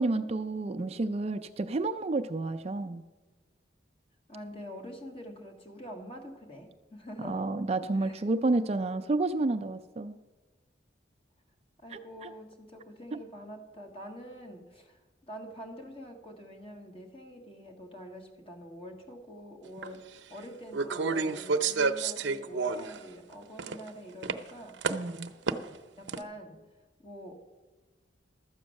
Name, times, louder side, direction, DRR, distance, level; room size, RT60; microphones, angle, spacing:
voice 1, 0.0-3.0 7.2-10.2 12.2-12.3 13.1-13.2 24.9-25.3, right 2 dB, 35° right, 9 dB, 0.4 m, -30 dB
voice 2, 4.3-7.5 7.9-8.2 11.8-24.8 26.0-26.6 27.0-27.3, equal, 30° left, 3 dB, 1.5 m, -46 dB
sound 1, 19.8-19.9 20.7-23.0 23.3-23.9 24.2-24.3 24.8-25.8 26.1-26.2, right 4 dB, 75° right, 0.6 m, -29 dB
12.5 x 7.9 x 6.4 m, 1.2 s
head